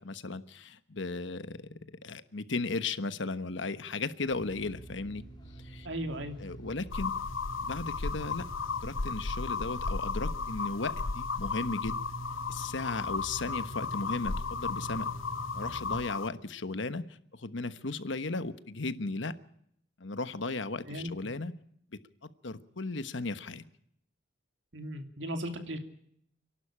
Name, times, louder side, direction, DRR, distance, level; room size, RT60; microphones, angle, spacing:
voice 1, 0.0-1.7 2.0-5.2 5.6-5.9 6.4-7.2 7.6-8.5 8.8-12.0 12.5-15.1 15.5-19.4 20.0-21.5 21.9-23.6, left 3 dB, 65° left, 12 dB, 1.2 m, -36 dB
sound 1, 4.3-16.1, right 1 dB, 20° left, 3.9 m, -45 dB
voice 2, 5.8-6.4 20.9-21.1 24.7-25.8, right 1 dB, 65° right, 6 dB, 2.8 m, -36 dB
sound 2, 6.9-16.3, left 4 dB, 90° left, 0.9 m, -35 dB
29.0 x 12.0 x 8.8 m, 0.70 s
head